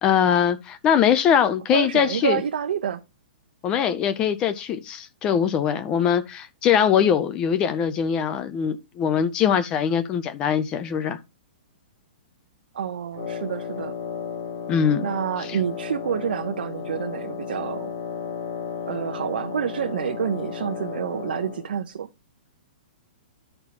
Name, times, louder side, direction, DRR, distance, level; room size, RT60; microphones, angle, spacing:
voice 1, 0.0-2.4 3.6-11.2 14.7-15.1, left 8 dB, 15° left, 0.5 m, -22 dB
voice 2, 1.7-3.0 6.0-6.1 12.7-13.9 15.0-17.9 18.9-22.1, right 8 dB, 70° right, 0.8 m, -28 dB
Wind instrument woodwind instrument, 13.1-21.7, left 7 dB, 50° left, 1.8 m, -34 dB
12.0 x 4.4 x 4.2 m
hypercardioid pair, 175°, 5 cm